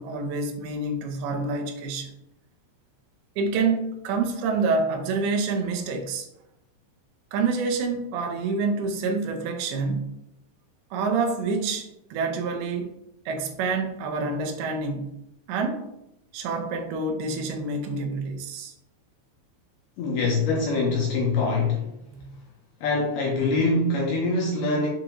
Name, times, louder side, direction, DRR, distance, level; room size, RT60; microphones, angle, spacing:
voice 1, 0.0-2.1 3.4-6.3 7.3-10.1 10.9-12.9 13.3-15.1 15.5-15.9 16.3-18.7 22.1-22.3, right 4 dB, 85° right, 3 dB, 2.6 m, -27 dB
voice 2, 20.0-21.9 22.8-24.9, left 3 dB, 80° left, -2 dB, 2.0 m, -24 dB
7.3 x 2.5 x 2.9 m, 0.87 s
omnidirectional pair, 4.5 m